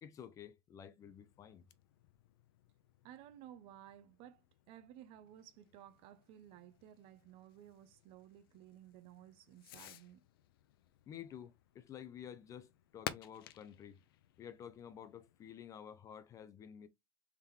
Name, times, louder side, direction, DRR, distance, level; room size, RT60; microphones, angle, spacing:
voice 1, 0.0-1.6 11.1-14.0 14.4-16.9, left 9 dB, 30° left, 0.4 m, -51 dB
Fireworks, 1.0-15.6, left 12 dB, 90° left, 0.5 m, -54 dB
voice 2, 3.0-10.2, right 11 dB, 50° right, 0.6 m, -56 dB
3.6 x 2.9 x 3.6 m
supercardioid pair, 135°, 12 cm